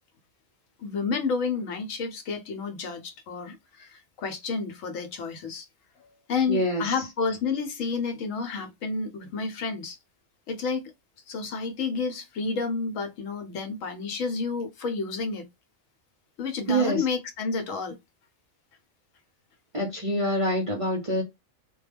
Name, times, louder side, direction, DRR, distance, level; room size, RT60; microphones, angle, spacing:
voice 1, 0.8-5.7 6.0-10.0 10.5-10.8 11.3-15.5 16.4-18.0, left 4 dB, 75° left, 1.0 m, -30 dB
voice 2, 6.5-6.8 16.7-17.0 19.7-21.2, right 1 dB, 45° right, 0.4 m, -25 dB
2.2 x 2.2 x 3.2 m
omnidirectional pair, 1.4 m